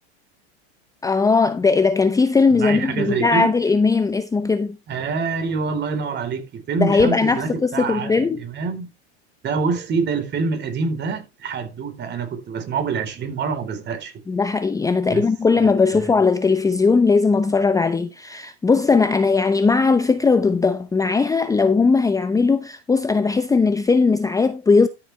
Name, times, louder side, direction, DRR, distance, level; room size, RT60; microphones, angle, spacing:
voice 1, 1.0-4.8 6.8-8.5 14.3-24.9, left 4 dB, 10° left, 0.7 m, -18 dB
voice 2, 2.5-3.5 4.9-8.9 9.4-14.1 15.1-15.2 15.6-16.1, right 5 dB, 30° right, 4.1 m, -26 dB
13.0 x 7.7 x 3.3 m
hypercardioid pair, 110°, 33 cm